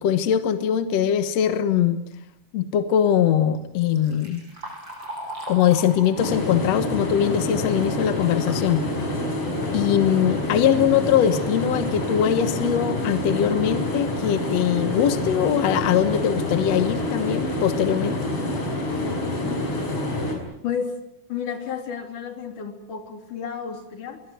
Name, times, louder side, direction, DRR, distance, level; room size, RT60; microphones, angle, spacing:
voice 1, 0.0-2.0 2.5-4.4 5.5-8.8 9.7-18.3, left 9 dB, 65° left, 10 dB, 2.2 m, -21 dB
Liquid, 3.6-8.7 9.1-9.2 10.1-10.2 10.6-10.9 11.5-11.6 12.1-12.2 12.6-12.9, right 1 dB, 35° right, 8.0 m, -40 dB
sound 1, 6.2-20.4, left 1 dB, 45° left, 6.4 m, -27 dB
voice 2, 21.3-24.2, left 7 dB, 80° left, 5 dB, 4.6 m, -31 dB
23.0 x 22.0 x 9.4 m, 0.78 s
omnidirectional pair, 3.6 m